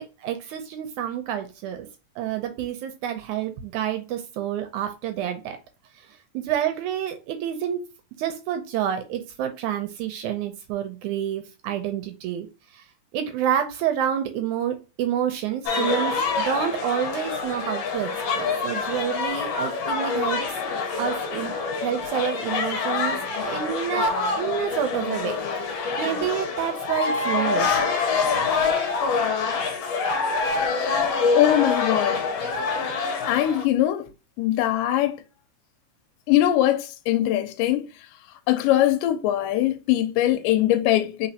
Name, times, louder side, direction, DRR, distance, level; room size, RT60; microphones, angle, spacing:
voice 1, 0.0-1.9 2.2-5.6 6.0-7.8 8.2-12.5 12.7-12.8 13.1-20.4 21.0-21.5 21.8-27.9, right 10 dB, 80° right, 1.8 m, -28 dB
sound 1, 15.7-33.6, left 4 dB, 70° left, 1.6 m, -26 dB
voice 2, 31.3-32.2 33.3-34.1 34.4-35.2 36.3-37.9 38.5-41.3, left 13 dB, 85° left, 2.1 m, -21 dB
4.1 x 4.0 x 2.7 m
omnidirectional pair, 3.8 m